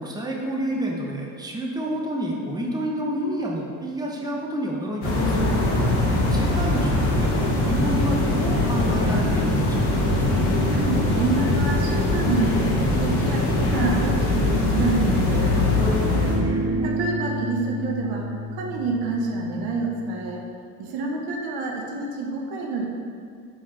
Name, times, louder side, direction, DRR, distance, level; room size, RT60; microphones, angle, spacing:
voice 1, 0.0-5.5 6.3-10.1 16.2-16.9, right 1 dB, 10° right, -2 dB, 1.0 m, -29 dB
sound 1, 5.0-16.4, left 2 dB, 65° left, 1.4 m, -22 dB
sound 2, 10.0-15.1 16.1-20.3, right 1 dB, 40° right, 0.9 m, -33 dB
voice 2, 10.7-15.6 16.2-16.3 16.8-18.3 18.5-20.4 20.8-22.9, right 3 dB, 70° right, 0 dB, 1.0 m, -27 dB
4.8 x 4.7 x 4.3 m, 2.2 s
hypercardioid pair, 70°, 40 cm